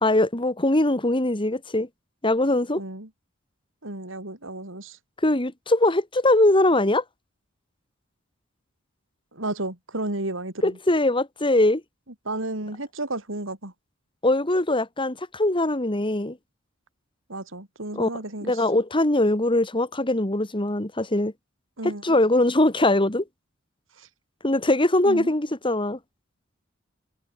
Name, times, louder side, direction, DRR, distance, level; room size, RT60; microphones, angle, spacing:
voice 1, 0.0-1.9 2.2-2.8 5.2-7.0 10.6-11.8 14.2-16.4 17.9-18.1 18.4-21.3 21.8-23.2 24.4-26.0, left 1 dB, 25° left, 2.3 m, -21 dB
voice 2, 2.7-3.1 3.8-5.0 9.3-10.7 12.2-13.7 17.3-18.6 21.8-22.0 24.0-24.1 25.0-25.3, right 2 dB, 70° right, 4.5 m, -32 dB
head